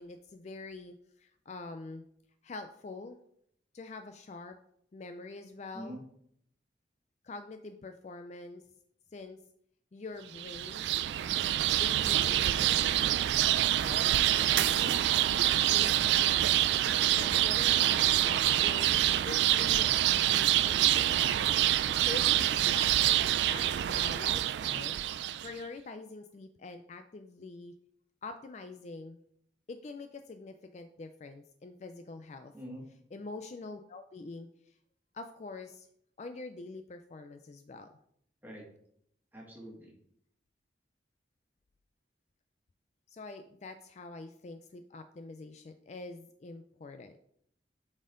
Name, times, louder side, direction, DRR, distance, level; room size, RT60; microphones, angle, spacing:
voice 1, 0.0-2.0 2.4-3.2 3.7-4.6 4.9-6.0 7.2-8.6 9.1-9.4 9.9-10.8 11.8-13.0 13.8-14.1 14.4-15.1 15.5-18.9 19.3-21.6 22.0-23.7 23.9-27.7 28.2-29.2 29.7-32.5 33.1-34.8 35.1-35.9 36.2-37.9 43.1-47.3, left 3 dB, 35° left, 8 dB, 0.3 m, -45 dB
sound 1, 10.4-25.5, right 12 dB, 65° right, 0.3 m, -26 dB
voice 2, 32.5-32.9 38.4-38.6 39.3-39.9, equal, 10° right, -2 dB, 1.6 m, -44 dB
8.7 x 4.2 x 3.7 m, 0.69 s
head